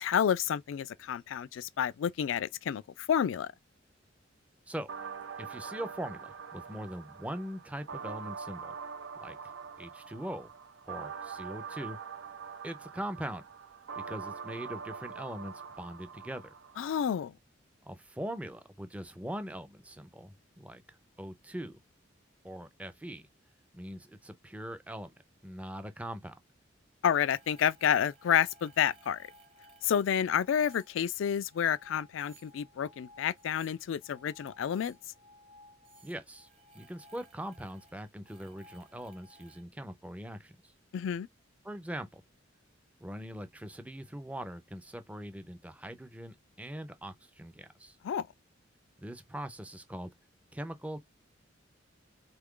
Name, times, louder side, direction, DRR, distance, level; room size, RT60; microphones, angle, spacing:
voice 1, 0.0-3.5 16.8-17.3 27.0-29.3 29.8-35.0 40.9-41.3 48.0-48.3, left 8 dB, 70° left, 0.3 m, -29 dB
sound 1, 4.9-16.9, right 6 dB, 75° right, 0.5 m, -44 dB
voice 2, 5.4-8.7 9.2-9.4 9.8-10.5 10.8-12.0 12.6-13.4 14.0-16.5 17.8-21.8 22.4-23.3 23.7-25.1 25.4-26.4 36.0-36.5 36.7-40.5 41.6-42.2 43.0-48.0 49.0-50.1 50.5-51.0, equal, 5° right, 0.4 m, -41 dB
sound 2, 27.1-39.6, equal, 30° right, 0.8 m, -58 dB
3.1 x 2.3 x 3.6 m
head